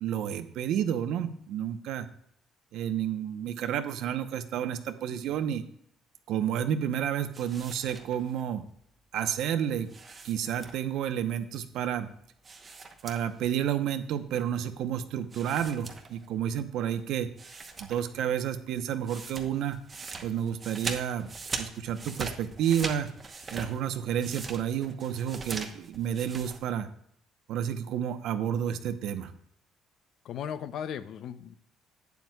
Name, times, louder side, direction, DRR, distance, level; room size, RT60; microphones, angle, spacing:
voice 1, 0.0-2.1 2.7-5.6 6.3-8.6 9.1-9.9 10.2-12.1 13.0-17.3 17.9-19.8 20.2-21.3 21.6-23.1 23.5-26.9 27.5-29.3, right 9 dB, 65° right, 9 dB, 0.8 m, -30 dB
sound 1, 7.3-8.4 9.9-11.0 12.4-13.5 13.8-13.9 15.3-16.5 17.0-17.1 17.4-18.2 18.5-26.6, right 4 dB, 20° right, 1.0 m, -41 dB
voice 2, 30.2-31.6, left 8 dB, 45° left, 13 dB, 0.5 m, -36 dB
12.0 x 9.4 x 2.3 m, 0.69 s
cardioid pair, 180°, 0 cm